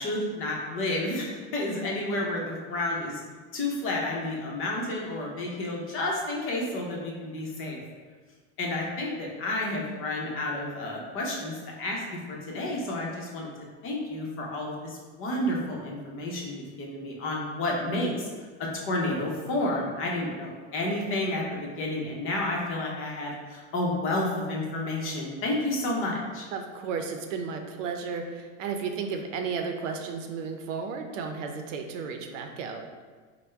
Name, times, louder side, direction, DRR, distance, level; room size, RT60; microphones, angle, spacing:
voice 1, 0.0-3.2 3.5-7.8 8.6-13.5 13.8-18.3 18.6-26.5, left 1 dB, 35° left, -2 dB, 0.8 m, -30 dB
voice 2, 26.5-32.8, right 5 dB, 85° right, 4 dB, 0.6 m, -33 dB
3.4 x 2.2 x 4.3 m, 1.4 s
supercardioid pair, 135°, 37 cm